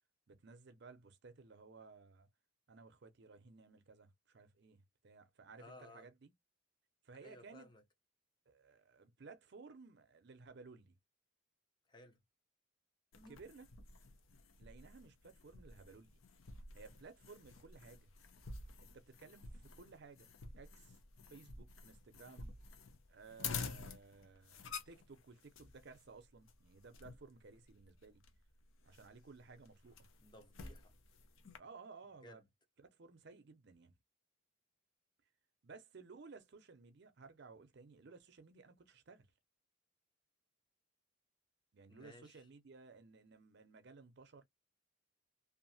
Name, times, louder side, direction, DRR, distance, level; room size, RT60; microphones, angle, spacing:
voice 1, 0.3-2.3 2.7-6.3 7.0-7.7 8.5-11.0 13.3-13.7 14.6-16.2 16.7-18.1 18.9-21.0 21.3-22.5 23.1-28.2 28.8-30.1 31.6-32.4 32.8-33.9 35.6-39.3 41.7-44.4, right 4 dB, 55° right, 0.5 m, -57 dB
voice 2, 5.6-6.1 7.2-7.8 11.9-12.2 13.1-13.4 30.2-30.9 32.2-32.4 41.9-42.5, left 1 dB, 20° left, 0.6 m, -58 dB
sound 1, 13.1-31.6, left 5 dB, 80° left, 0.6 m, -51 dB
2.7 x 2.4 x 2.7 m
head